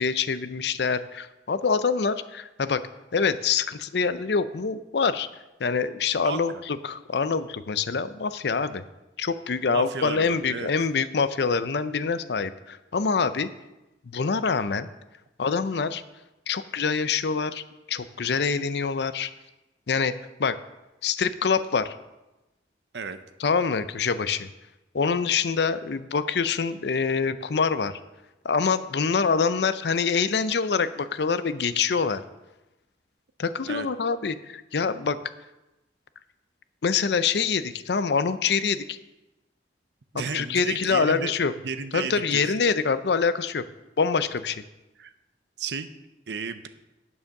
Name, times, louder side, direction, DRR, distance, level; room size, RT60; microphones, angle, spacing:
voice 1, 0.0-2.8 3.1-5.3 5.6-8.8 9.2-13.5 14.1-14.9 15.4-16.0 16.5-17.6 17.9-19.3 19.9-20.1 20.4-20.6 21.0-21.9 23.4-24.5 24.9-28.0 28.4-32.2 33.4-35.2 36.8-39.0 40.1-41.5 41.9-43.7 44.0-44.6, left 5 dB, 65° left, 13 dB, 0.5 m, -25 dB
voice 2, 6.2-6.6 9.7-10.7 22.9-23.2 33.7-33.9 40.1-41.3 41.6-42.5 45.0-45.1 45.6-45.9 46.3-46.7, right 5 dB, 70° right, 10 dB, 0.6 m, -33 dB
8.5 x 7.1 x 6.5 m, 1.0 s
head